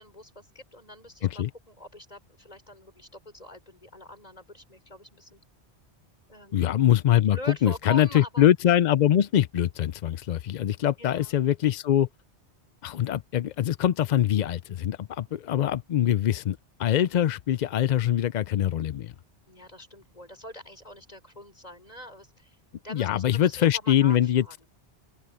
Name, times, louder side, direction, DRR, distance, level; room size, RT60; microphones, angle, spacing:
voice 1, 0.0-5.4 6.3-6.7 7.3-8.5 11.0-11.4 19.5-22.6 22.8-24.6, left 1 dB, 35° left, 5.9 m, -43 dB
voice 2, 6.5-12.1 12.8-19.1 22.9-24.6, left 11 dB, 60° left, 0.5 m, -23 dB
open air
omnidirectional pair, 1.1 m